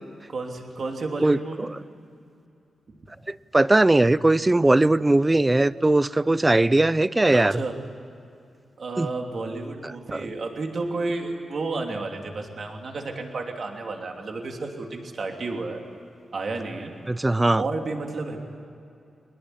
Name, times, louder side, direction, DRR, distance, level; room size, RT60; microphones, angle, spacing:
voice 1, 0.3-1.7 2.9-3.0 7.3-7.8 8.8-15.8 16.3-16.9 17.5-18.4, right 3 dB, 50° right, 2 dB, 3.1 m, -31 dB
voice 2, 3.3-7.5 9.0-9.1 10.1-10.2 17.1-17.6, right 2 dB, 15° right, 17 dB, 0.5 m, -19 dB
24.0 x 20.5 x 10.0 m, 2.6 s
wide cardioid pair, 125°, 0 cm